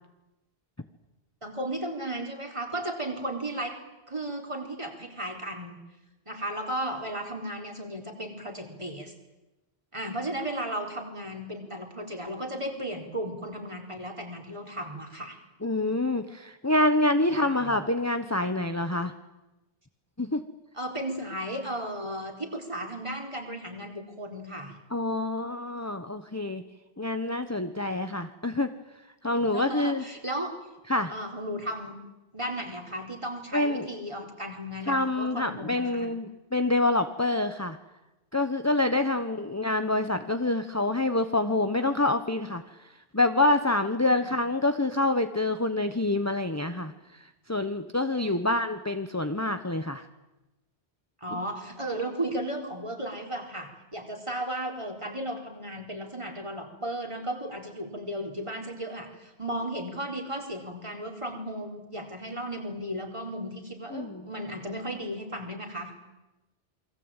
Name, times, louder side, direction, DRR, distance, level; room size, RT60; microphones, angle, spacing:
voice 1, 1.4-3.8 4.1-5.8 6.3-9.1 9.9-15.4 17.3-17.8 20.7-24.8 29.4-30.5 31.1-32.0 32.3-36.1 39.3-39.5 44.2-44.3 48.1-48.4 51.2-65.9, right 1 dB, 25° right, 2 dB, 4.4 m, -35 dB
voice 2, 15.6-19.1 20.2-20.4 24.9-26.6 27.0-28.7 29.2-30.0 30.9-31.1 33.5-33.9 34.9-37.8 38.3-42.9 43.1-50.0 51.3-51.4 63.9-64.3, left 2 dB, 15° left, 8 dB, 1.1 m, -27 dB
28.5 x 22.5 x 9.1 m, 1.0 s
omnidirectional pair, 1.1 m